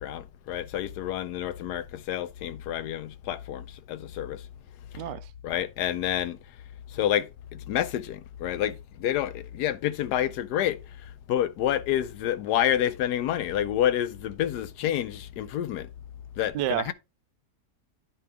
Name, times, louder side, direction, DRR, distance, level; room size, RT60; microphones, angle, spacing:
voice 1, 0.0-4.4 5.4-6.4 6.9-7.3 7.7-10.8 11.3-15.9 16.4-16.9, left 11 dB, 75° left, 1.1 m, -28 dB
voice 2, 4.9-5.3 16.5-16.9, right 13 dB, 85° right, 1.3 m, -29 dB
10.0 x 4.5 x 3.5 m
omnidirectional pair, 1.8 m